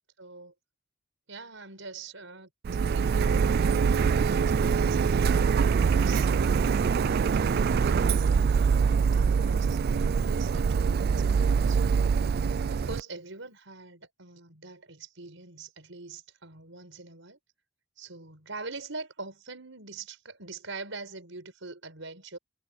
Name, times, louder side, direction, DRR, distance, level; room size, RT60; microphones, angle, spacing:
voice 1, 0.2-0.5 1.3-12.0 12.7-17.4 18.0-22.4, right 3 dB, 80° right, 5.2 m, -44 dB
Printer, 2.6-13.0, right 6 dB, 50° right, 0.3 m, -24 dB
head